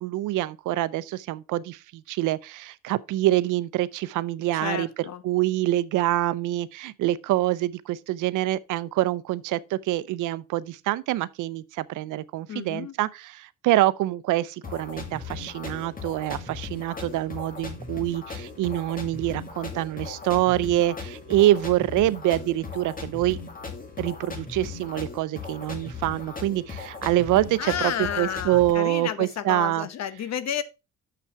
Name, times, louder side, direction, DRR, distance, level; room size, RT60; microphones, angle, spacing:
voice 1, 0.0-4.9 5.2-23.4 24.0-29.9, right 15 dB, 85° right, 0.6 m, -25 dB
voice 2, 4.6-5.2 12.5-12.9 27.6-30.6, left 9 dB, 60° left, 1.0 m, -31 dB
sound 1, 14.6-28.7, left 5 dB, 30° left, 1.9 m, -38 dB
6.9 x 5.9 x 4.5 m
cardioid pair, 90°, 30 cm